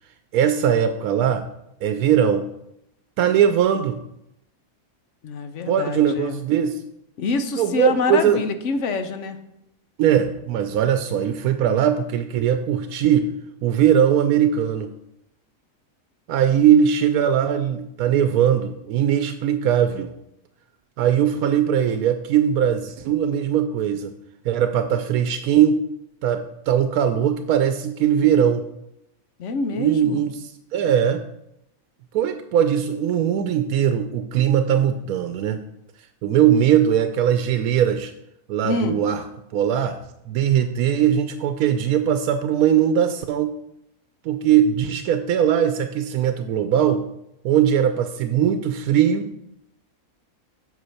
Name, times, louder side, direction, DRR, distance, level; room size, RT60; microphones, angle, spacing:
voice 1, 0.3-1.4 1.8-2.5 3.2-4.0 5.7-6.8 7.6-8.4 10.0-13.3 13.6-14.9 16.3-20.1 21.0-24.1 24.4-25.8 26.2-28.6 29.8-31.2 32.1-35.6 36.2-38.1 38.5-39.2 39.5-40.0 40.3-43.6 44.2-47.1 47.4-49.3, right 9 dB, 85° right, 8 dB, 1.1 m, -20 dB
voice 2, 5.2-6.4 7.2-9.4 29.4-30.2 38.6-39.0, left 4 dB, 60° left, 9 dB, 1.1 m, -26 dB
8.1 x 5.4 x 5.7 m, 0.82 s
omnidirectional pair, 1.5 m